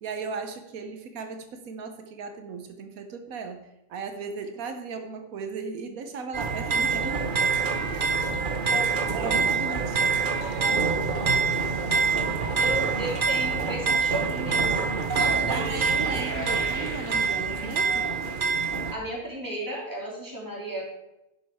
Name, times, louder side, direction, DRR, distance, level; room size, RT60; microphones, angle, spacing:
voice 1, 0.0-3.6 3.9-7.3 9.1-10.3 15.5-18.2, right 4 dB, 90° right, 7 dB, 1.4 m, -36 dB
sound 1, 6.3-18.9, right 5 dB, 40° right, 1.0 m, -25 dB
voice 2, 8.7-9.5 11.3-12.3 12.6-14.8 15.1-16.2 18.9-20.8, right 1 dB, 15° right, -4 dB, 3.3 m, -35 dB
sound 2, 12.7-13.4 15.5-18.4, left 2 dB, 75° left, 3.2 m, -44 dB
11.5 x 7.1 x 4.7 m, 0.93 s
omnidirectional pair, 1.4 m